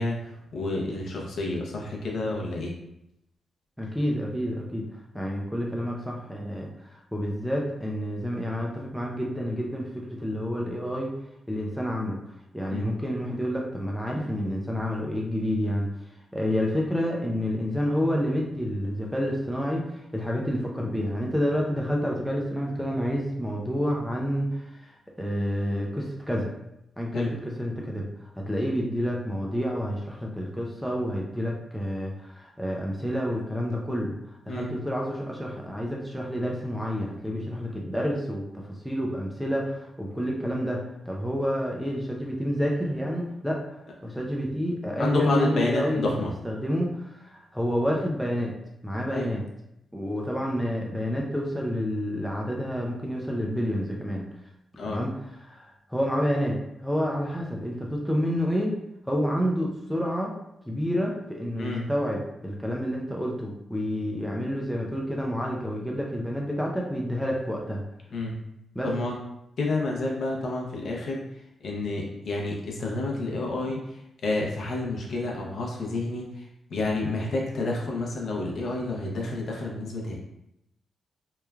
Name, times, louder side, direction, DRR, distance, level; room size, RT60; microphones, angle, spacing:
voice 1, 0.0-2.7 12.7-12.9 27.1-27.4 34.5-34.7 45.0-46.3 49.1-49.3 54.8-55.0 61.6-61.9 68.1-68.3 68.8-69.1 69.6-71.2 71.6-76.4 76.7-80.2, left 2 dB, 55° left, -1 dB, 0.5 m, -29 dB
voice 2, 3.8-4.9 5.1-11.1 11.5-12.2 12.5-15.9 16.3-26.5 27.0-28.1 28.4-34.1 34.5-43.6 44.0-46.2 46.4-48.5 48.8-49.4 49.9-54.2 54.9-55.1 55.4-58.7 59.1-60.3 60.7-67.8 68.8-68.9, equal, ahead, -1 dB, 0.3 m, -29 dB
3.0 x 2.2 x 2.3 m, 0.82 s
wide cardioid pair, 170°, 0 cm